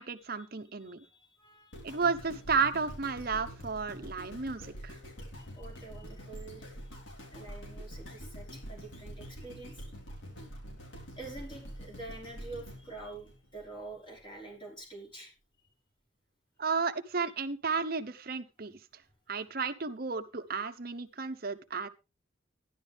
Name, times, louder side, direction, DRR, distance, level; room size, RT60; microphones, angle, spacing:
voice 1, 0.0-1.0 1.8-5.0 16.6-19.0 19.3-21.9, right 5 dB, 50° right, 10 dB, 1.0 m, -33 dB
voice 2, 0.9-2.0 5.4-6.8 7.3-9.8 11.2-15.3 17.2-17.3, right 2 dB, 25° left, -2 dB, 5.2 m, -47 dB
sound 1, 1.7-13.9 14.5-14.6, equal, 85° left, 4.3 m, -46 dB
13.0 x 11.0 x 3.5 m, 0.28 s
head